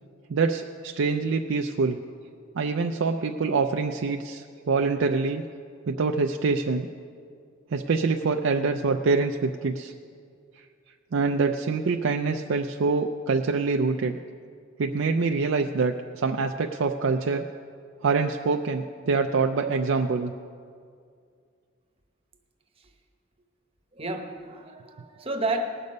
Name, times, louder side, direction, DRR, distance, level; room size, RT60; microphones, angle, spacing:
voice 1, 0.3-2.0 2.6-5.4 5.9-6.9 7.7-9.9 11.1-14.2 14.8-17.5 18.0-20.3, right 4 dB, 75° right, 4 dB, 0.5 m, -25 dB
voice 2, 23.9-25.7, right 2 dB, 30° right, 4 dB, 1.0 m, -31 dB
19.0 x 6.7 x 5.3 m, 2.2 s
head